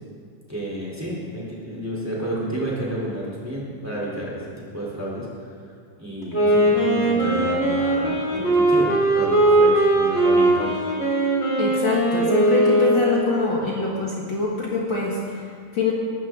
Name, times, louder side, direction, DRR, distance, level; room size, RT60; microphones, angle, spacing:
voice 1, 0.5-5.3 6.0-10.7, right 1 dB, 5° right, -5 dB, 2.9 m, -30 dB
Wind instrument woodwind instrument, 6.2-13.4, right 1 dB, 20° left, 2.0 m, -19 dB
voice 2, 11.6-15.9, left 3 dB, 75° left, -4 dB, 1.0 m, -24 dB
21.5 x 12.5 x 3.9 m, 2.3 s
omnidirectional pair, 5.2 m